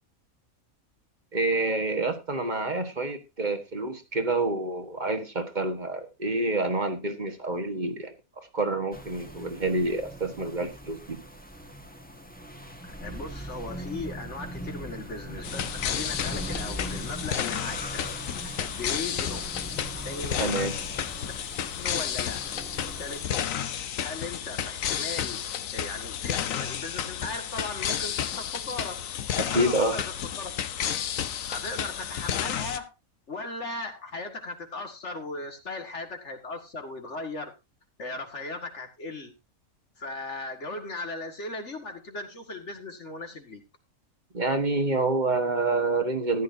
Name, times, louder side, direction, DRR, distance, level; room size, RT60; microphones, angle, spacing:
voice 1, 1.3-11.2 20.4-20.7 29.4-30.0 44.3-46.4, right 2 dB, 35° right, 7 dB, 1.5 m, -28 dB
sound 1, 8.9-23.2, right 1 dB, 5° left, 1.4 m, -40 dB
voice 2, 12.8-18.1 18.4-19.6 20.0-20.5 21.0-21.2 21.7-22.4 23.0-23.7 24.0-25.4 25.7-29.0 29.5-30.5 31.5-32.9 33.3-37.5 38.0-39.3 40.0-43.6, left 2 dB, 55° left, 5 dB, 2.3 m, -37 dB
sound 2, 15.4-32.8, left 9 dB, 70° left, 1.2 m, -32 dB
14.5 x 11.0 x 2.7 m, 0.24 s
omnidirectional pair, 1.5 m